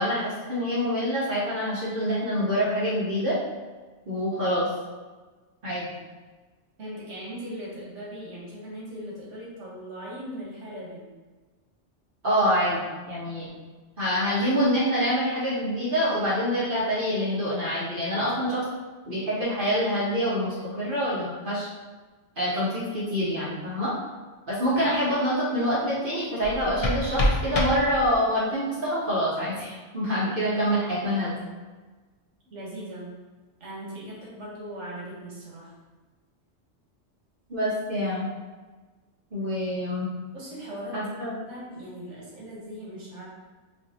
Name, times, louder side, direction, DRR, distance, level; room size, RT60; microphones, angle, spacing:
voice 1, 0.0-3.4 4.1-4.7 5.6-5.9 12.2-13.5 14.0-18.6 19.1-21.7 22.4-23.9 24.5-31.4 37.5-38.3 39.3-40.1 40.9-41.3, equal, 50° right, -9 dB, 1.2 m, -26 dB
voice 2, 6.8-11.1 24.7-24.9 32.5-33.2 33.6-35.7 40.3-43.3, equal, 85° right, -5 dB, 1.5 m, -39 dB
sound 1, 26.4-28.4, left 1 dB, 45° left, 0.5 m, -27 dB
4.8 x 2.6 x 2.8 m, 1.3 s
omnidirectional pair, 1.2 m